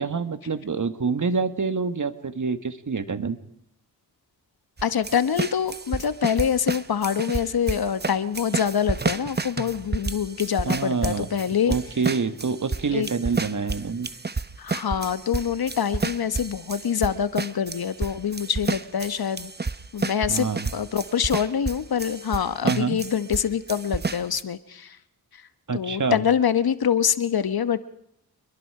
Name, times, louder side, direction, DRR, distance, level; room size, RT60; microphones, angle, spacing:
voice 1, 0.0-3.4 10.7-11.3 11.7-14.1 20.3-20.7 22.6-23.0 25.7-26.2, right 5 dB, 50° right, 10 dB, 1.8 m, -26 dB
voice 2, 4.8-11.7 12.9-13.1 14.6-19.5 19.9-20.5 20.7-25.0 25.7-27.8, left 8 dB, 70° left, 13 dB, 1.3 m, -25 dB
sound 1, 4.8-23.4 23.7-24.4, right 4 dB, 25° right, 1.0 m, -30 dB
28.0 x 22.0 x 4.9 m, 0.77 s
cardioid pair, 70°, 38 cm